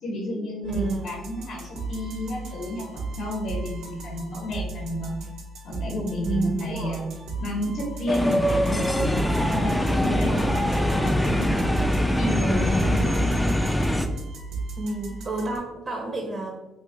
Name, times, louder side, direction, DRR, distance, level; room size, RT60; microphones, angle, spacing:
voice 1, 0.0-5.1 5.6-7.0 7.4-11.8 12.2-13.4, left 1 dB, 65° left, -1 dB, 0.8 m, -31 dB
voice 2, 0.6-1.2 6.2-7.1 10.0-10.7 14.8-16.6, right 3 dB, 40° right, 1 dB, 0.6 m, -30 dB
sound 1, 0.6-15.6, right 3 dB, 85° right, 0.6 m, -36 dB
sound 2, 8.1-14.1, equal, 10° left, 0.3 m, -23 dB
2.6 x 2.6 x 3.6 m, 1.0 s
cardioid pair, 90°, 0 cm